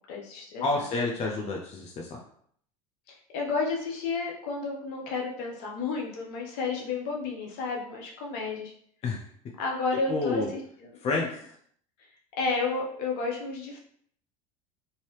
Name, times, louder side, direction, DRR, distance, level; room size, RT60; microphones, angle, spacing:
voice 1, 0.1-0.9 3.1-8.7 9.6-11.0 12.0-12.1 12.4-13.8, left 4 dB, 60° left, 0 dB, 0.9 m, -31 dB
voice 2, 0.6-2.2 9.0-9.2 10.1-10.5 11.0-11.3, left 3 dB, 35° left, -1 dB, 0.6 m, -29 dB
2.7 x 2.7 x 3.2 m, 0.63 s
hypercardioid pair, 75°, 19 cm